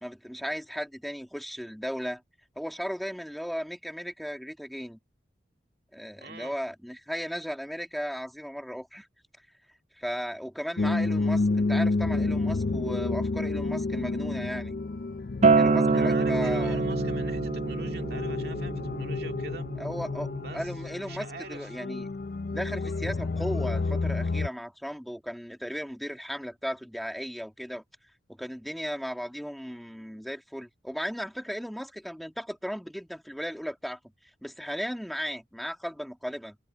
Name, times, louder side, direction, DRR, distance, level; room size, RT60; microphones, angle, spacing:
voice 1, 0.0-2.2 2.6-5.0 5.9-9.1 10.0-14.8 15.6-16.8 19.8-22.1 22.5-27.8 28.4-34.0 34.4-36.6, equal, ahead, 1.9 m, -36 dB
voice 2, 6.2-6.5 15.9-19.7 20.4-21.9, right 3 dB, 55° right, 2.4 m, -44 dB
sound 1, 10.8-24.5, left 3 dB, 50° left, 0.5 m, -30 dB
Acoustic guitar, 15.4-20.6, right 4 dB, 35° right, 0.3 m, -26 dB
head